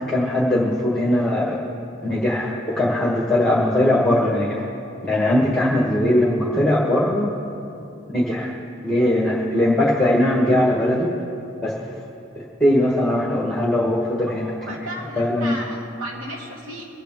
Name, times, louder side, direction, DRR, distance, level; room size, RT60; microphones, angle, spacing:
voice 1, 0.1-1.6 2.0-4.6 5.0-7.3 8.1-8.5 8.8-11.1 11.6-11.7 12.3-14.5 15.2-15.5, left 1 dB, 5° left, -5 dB, 1.4 m, -20 dB
voice 2, 14.7-16.8, right 1 dB, 90° right, -2 dB, 2.8 m, -34 dB
24.0 x 8.2 x 4.6 m, 2.8 s
head